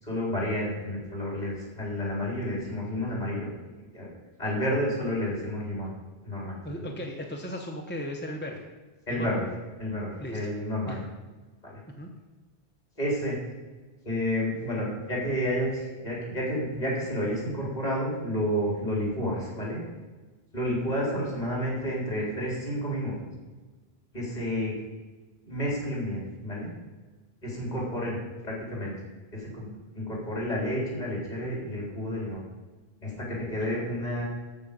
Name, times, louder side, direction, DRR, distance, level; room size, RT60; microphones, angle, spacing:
voice 1, 0.0-3.5 3.9-4.1 4.4-5.9 6.2-6.9 9.1-9.4 9.8-11.0 11.6-11.8 13.0-13.4 14.0-19.8 20.5-23.1 24.1-24.8 25.4-26.7 27.4-28.2 28.4-28.9 29.3-29.7 29.9-32.4 33.0-34.2, equal, 45° left, -4 dB, 4.2 m, -30 dB
voice 2, 6.6-8.6 9.1-9.3 10.2-10.4 10.9-11.0 11.9-12.1, left 1 dB, 10° left, 1 dB, 0.9 m, -36 dB
14.0 x 6.2 x 5.4 m, 1.3 s
omnidirectional pair, 1.1 m